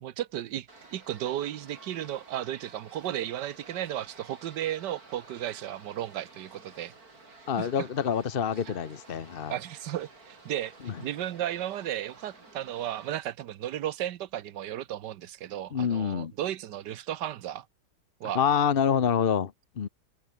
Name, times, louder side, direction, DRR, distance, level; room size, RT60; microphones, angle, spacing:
voice 1, 0.0-6.9 7.6-7.9 8.6-8.8 9.5-17.7 18.2-18.4, right 12 dB, 85° right, 1.5 m, -34 dB
sound 1, 0.7-13.1, right 3 dB, 60° right, 4.8 m, -52 dB
voice 2, 7.5-9.5 10.9-11.0 15.7-16.3 18.3-19.9, left 7 dB, 40° left, 0.9 m, -27 dB
omnidirectional pair, 1.8 m